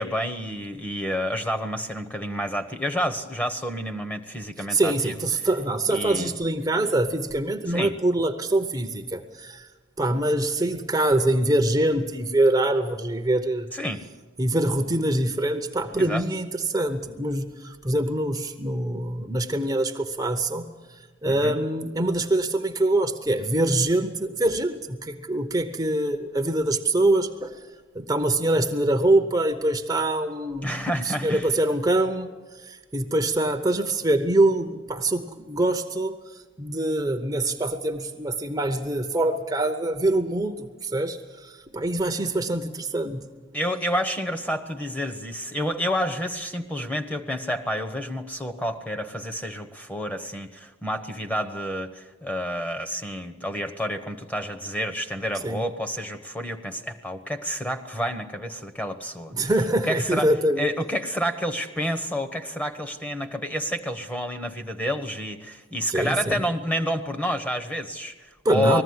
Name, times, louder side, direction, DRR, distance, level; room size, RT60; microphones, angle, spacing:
voice 1, 0.0-5.5 5.9-6.3 7.7-7.9 13.7-14.0 15.9-16.2 21.3-21.6 30.6-31.5 43.5-59.5 59.8-68.8, equal, 10° left, 8 dB, 1.0 m, -29 dB
voice 2, 4.7-9.7 10.0-13.7 14.4-20.7 21.2-27.5 27.9-32.3 32.6-36.1 36.6-43.3 55.4-55.6 59.3-60.7 65.9-66.4 68.4-68.8, right 1 dB, 20° right, 6 dB, 0.8 m, -24 dB
20.5 x 14.5 x 9.6 m, 1.2 s
head